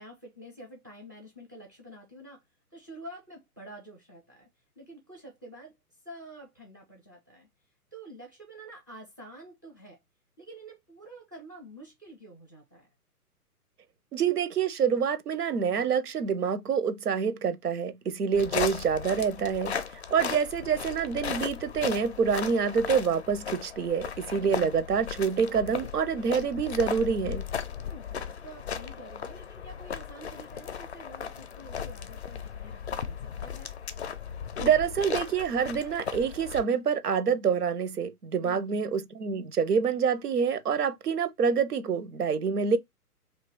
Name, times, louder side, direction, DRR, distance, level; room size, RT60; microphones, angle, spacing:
voice 1, 0.0-2.4 2.7-4.5 4.8-5.7 6.0-7.5 7.9-10.0 10.4-12.9 27.8-33.7 38.4-38.9, right 1 dB, 15° right, 0.4 m, -48 dB
voice 2, 14.1-19.7 20.1-27.5 34.6-42.8, right 6 dB, 85° right, 0.6 m, -27 dB
sound 1, 18.3-36.6, left 7 dB, 50° left, 0.4 m, -36 dB
2.8 x 2.3 x 3.0 m
figure-of-eight pair, 130°, 46 cm